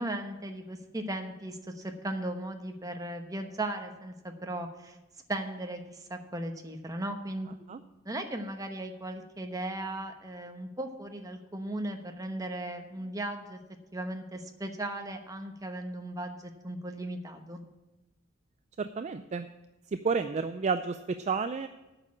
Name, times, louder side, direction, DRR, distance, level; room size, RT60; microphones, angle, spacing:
voice 1, 0.0-5.0 5.3-7.5 8.0-13.6 13.9-17.6, right 1 dB, 20° right, 5 dB, 1.0 m, -37 dB
voice 2, 18.8-19.5 19.9-21.7, right 5 dB, 35° right, 10 dB, 0.4 m, -31 dB
8.9 x 6.5 x 8.6 m, 1.0 s
head